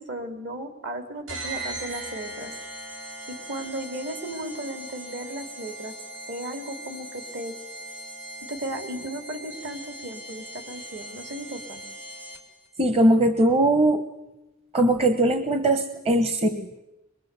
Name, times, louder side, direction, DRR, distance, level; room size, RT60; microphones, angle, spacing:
voice 1, 0.0-2.5 3.3-5.9 6.3-7.6 8.4-11.8, right 1 dB, 60° right, 7 dB, 3.0 m, -35 dB
sound 1, 1.3-12.7, right 1 dB, 75° right, 4.1 m, -39 dB
voice 2, 12.8-14.0 14.7-16.8, right 1 dB, 30° right, 9 dB, 1.1 m, -20 dB
23.0 x 22.5 x 8.2 m, 0.96 s
head